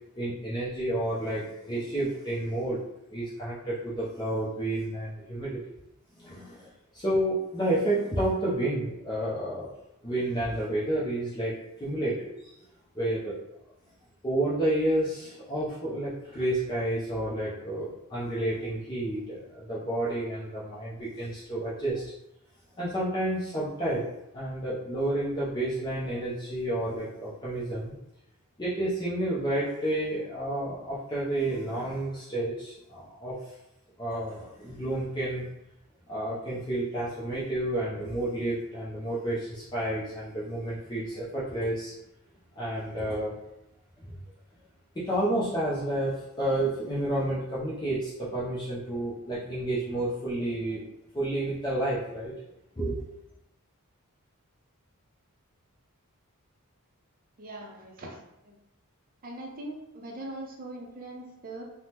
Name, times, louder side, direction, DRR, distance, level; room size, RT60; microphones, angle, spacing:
voice 1, 0.2-2.8 3.1-5.6 6.2-9.7 10.0-12.6 12.9-13.3 14.2-22.0 22.8-28.0 28.6-33.5 34.0-35.4 36.1-41.9 42.6-43.4 44.0-44.1 44.9-50.8 51.1-52.3 52.8-53.0, right 1 dB, 20° left, -9 dB, 0.6 m, -30 dB
voice 2, 57.4-58.5 59.2-61.6, right 1 dB, 40° right, 0 dB, 0.6 m, -41 dB
3.4 x 2.1 x 2.8 m, 0.87 s
head